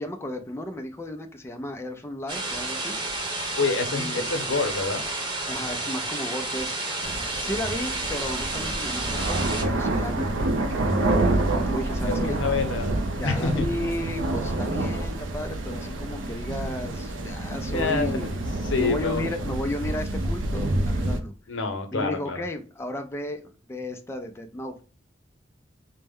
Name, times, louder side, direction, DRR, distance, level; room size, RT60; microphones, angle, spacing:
voice 1, 0.0-3.0 3.9-4.3 5.5-6.9 7.4-10.3 10.5-12.4 13.2-18.4 18.8-21.3 21.9-24.7, left 1 dB, 15° left, 0.4 m, -34 dB
sound 1, 2.3-9.6, right 2 dB, 25° right, 0.8 m, -31 dB
voice 2, 3.6-5.0 12.0-13.7 17.7-18.4 18.7-19.3 21.5-22.4, left 3 dB, 85° left, 0.8 m, -27 dB
sound 2, 7.0-21.2, right 2 dB, 85° right, 0.6 m, -28 dB
4.3 x 2.1 x 3.5 m
head